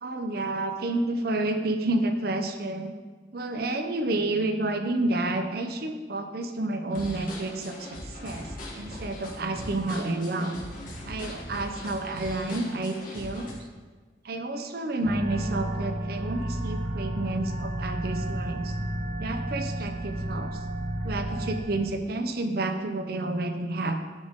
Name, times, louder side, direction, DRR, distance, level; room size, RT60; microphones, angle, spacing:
voice 1, 0.0-2.9 3.3-8.5 8.7-10.5 11.1-13.5 14.2-18.7 19.2-20.5 21.0-24.0, right 2 dB, 55° right, 6 dB, 0.6 m, -30 dB
sound 1, 6.9-13.5, left 1 dB, 50° left, 1.5 m, -40 dB
sound 2, 15.0-21.6, right 1 dB, 90° right, 0.9 m, -32 dB
9.1 x 3.6 x 5.2 m, 1.4 s
head